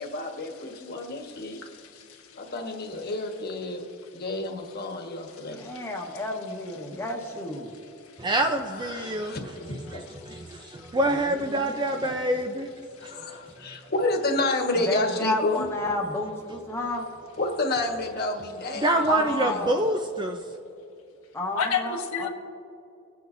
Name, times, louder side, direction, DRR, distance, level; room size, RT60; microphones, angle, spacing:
voice 1, 0.0-1.6 2.3-5.6 8.6-10.1 13.0-15.7 17.4-19.6, left 2 dB, 50° left, 3 dB, 1.4 m, -30 dB
voice 2, 1.2-2.5 5.4-5.9 10.3-11.0 12.9-13.1 13.6-13.7 21.5-22.3, left 6 dB, 80° left, 3 dB, 1.3 m, -34 dB
voice 3, 5.6-7.8 11.1-11.7 14.8-17.1 19.1-19.9 21.3-22.3, left 2 dB, 10° left, 0 dB, 1.2 m, -32 dB
voice 4, 8.2-9.4 9.9-12.7 13.0-13.2 13.7-13.8 18.8-20.4, right 1 dB, 20° right, 4 dB, 0.5 m, -26 dB
24.5 x 9.3 x 2.6 m, 2.8 s
head